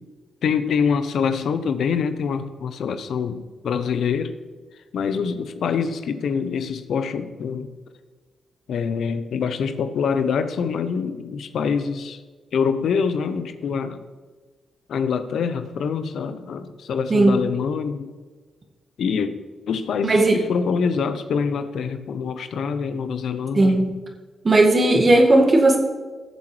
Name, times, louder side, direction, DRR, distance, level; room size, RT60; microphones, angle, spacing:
voice 1, 0.4-4.3 4.9-7.7 8.7-12.2 12.5-14.0 14.9-18.1 19.0-19.3 19.7-23.9, left 6 dB, 70° left, 11 dB, 0.8 m, -25 dB
voice 2, 20.0-20.4 23.6-23.9 24.4-25.8, right 2 dB, 40° right, 1 dB, 1.9 m, -16 dB
18.0 x 7.2 x 3.3 m, 1.4 s
supercardioid pair, 45°, 0 cm